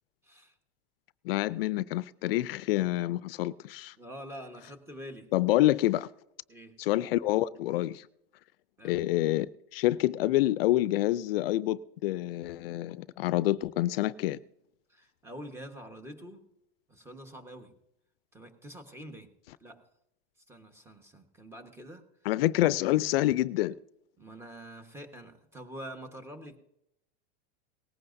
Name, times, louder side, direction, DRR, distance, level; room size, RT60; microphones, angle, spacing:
voice 1, 0.2-0.6 4.0-5.3 6.5-6.8 8.8-9.0 14.9-16.5 16.9-17.8 18.3-19.3 19.6-19.9 20.5-22.0 24.2-26.6, equal, 10° right, 1.3 m, -46 dB
voice 2, 1.2-3.9 5.3-6.1 6.8-8.1 8.8-9.5 9.7-14.4 22.3-23.7, left 16 dB, 70° left, 0.5 m, -27 dB
18.5 x 15.5 x 2.7 m
supercardioid pair, 145°, 30 cm